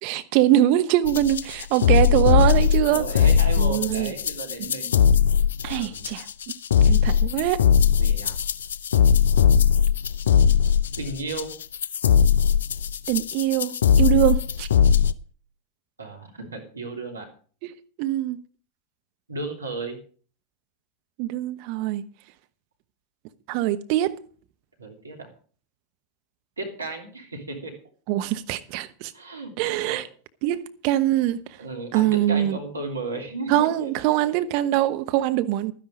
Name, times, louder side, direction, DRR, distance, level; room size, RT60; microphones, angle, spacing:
voice 1, 0.0-3.1 3.6-4.1 5.6-6.3 6.8-7.6 13.1-14.7 18.0-18.4 21.2-22.0 23.5-24.1 28.1-29.1 29.6-30.0 30.4-31.4 31.9-32.6 33.5-35.7, right 14 dB, 55° right, 1.1 m, -23 dB
sound 1, 1.1-15.1, left 8 dB, 75° left, 0.5 m, -20 dB
voice 2, 2.9-5.0 5.6-6.1 8.0-8.3 11.0-11.5 16.0-17.3 19.3-20.0 24.8-25.3 26.6-27.7 29.1-30.0 31.6-33.9, right 3 dB, 90° right, 3.1 m, -34 dB
12.0 x 10.0 x 5.1 m
figure-of-eight pair, 90°, 0 cm